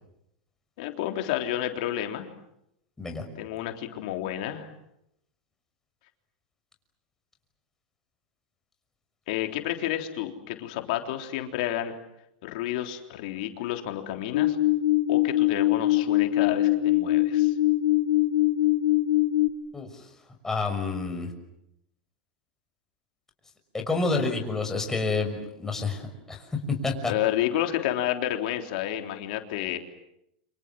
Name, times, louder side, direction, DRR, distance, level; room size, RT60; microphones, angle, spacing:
voice 1, 0.8-2.3 3.4-4.7 9.3-11.9 12.4-14.6 15.1-17.5 27.1-29.8, left 12 dB, 65° left, 5 dB, 3.6 m, -30 dB
sound 1, 14.3-19.5, left 15 dB, 80° left, 2.6 m, -22 dB
voice 2, 19.7-20.0 20.4-21.3 23.7-26.4 26.8-27.1, left 3 dB, 10° left, 3 dB, 6.2 m, -29 dB
29.5 x 26.0 x 7.7 m, 0.80 s
supercardioid pair, 130°, 5 cm